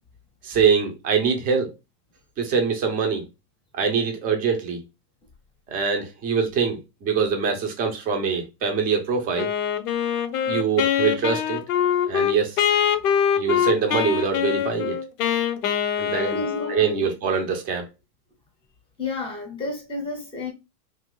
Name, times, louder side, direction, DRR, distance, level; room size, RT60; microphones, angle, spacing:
voice 1, 0.4-1.7 2.4-3.2 3.7-4.8 5.7-9.5 10.4-11.6 12.1-12.6 13.4-15.0 16.0-16.4 16.7-17.9, right 6 dB, 20° right, 0.6 m, -24 dB
Wind instrument woodwind instrument, 9.4-17.0, left 8 dB, 70° left, 0.7 m, -23 dB
voice 2, 16.3-17.1 19.0-20.5, left 2 dB, 10° left, 0.8 m, -31 dB
2.7 x 2.4 x 3.7 m
supercardioid pair, 145°, 47 cm